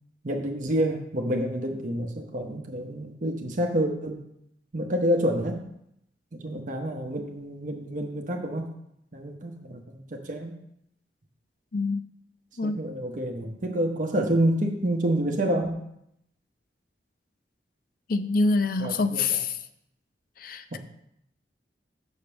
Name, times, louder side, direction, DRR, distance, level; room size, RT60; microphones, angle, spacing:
voice 1, 0.2-4.2 4.7-5.6 6.3-8.7 9.1-10.6 12.6-15.8 18.8-19.4 20.7-20.8, right 1 dB, 45° right, 3 dB, 0.8 m, -28 dB
voice 2, 18.1-19.6 20.4-20.8, left 3 dB, 50° left, 10 dB, 0.5 m, -26 dB
6.4 x 5.2 x 6.9 m, 0.77 s
head